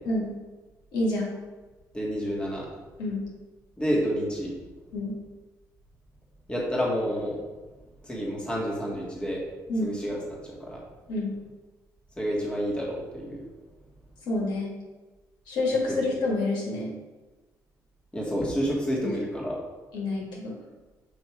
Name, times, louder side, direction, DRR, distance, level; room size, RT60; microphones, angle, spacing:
voice 1, 0.9-1.3 3.0-3.2 4.9-5.1 9.7-9.9 11.1-11.3 14.3-14.7 15.5-16.9 19.0-19.1 19.9-20.5, left 2 dB, 85° left, -4 dB, 1.9 m, -28 dB
voice 2, 1.9-2.7 3.8-4.5 6.5-7.4 8.0-9.4 9.8-10.8 12.2-13.4 15.9-16.0 18.1-19.6, equal, 15° left, -4 dB, 1.6 m, -29 dB
7.1 x 2.9 x 4.5 m, 1.2 s
cardioid pair, 95°, 7 cm